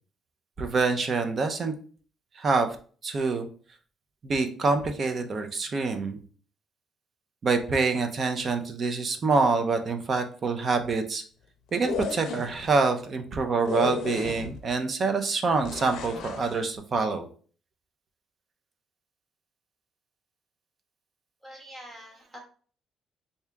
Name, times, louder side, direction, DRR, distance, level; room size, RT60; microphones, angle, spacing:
voice 1, 0.6-1.7 2.4-2.7 3.0-3.5 4.2-6.2 7.4-11.2 11.7-17.3, right 4 dB, 35° right, 6 dB, 0.5 m, -26 dB
sound 1, 11.7-12.7 13.6-14.7 15.6-16.6, left 7 dB, 75° left, 0.5 m, -34 dB
voice 2, 21.4-22.4, equal, 15° right, 0 dB, 1.2 m, -45 dB
3.5 x 2.7 x 3.4 m, 0.42 s
cardioid pair, 140°, 0 cm